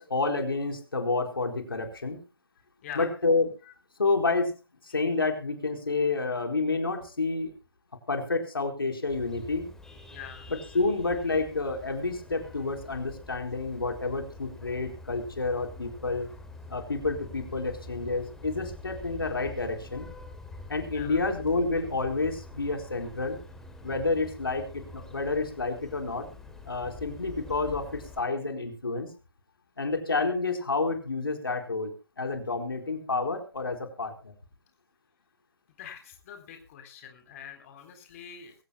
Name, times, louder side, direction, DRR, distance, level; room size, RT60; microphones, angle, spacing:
voice 1, 0.0-2.2 3.0-3.5 4.0-4.5 4.8-7.5 8.1-9.7 10.7-16.3 16.7-20.1 20.7-23.4 23.8-26.3 26.7-29.1 29.8-31.9 32.2-34.3, left 3 dB, 80° left, 4 dB, 4.3 m, -29 dB
voice 2, 2.8-3.2 3.6-3.7 5.1-5.2 10.1-10.5 20.9-21.3 35.8-38.5, left 8 dB, 40° left, 6 dB, 3.8 m, -44 dB
Vehicle horn car horn honking, 9.1-28.2, left 2 dB, 5° left, 3.0 m, -46 dB
23.5 x 15.5 x 2.2 m, 0.31 s
figure-of-eight pair, 135°, 12 cm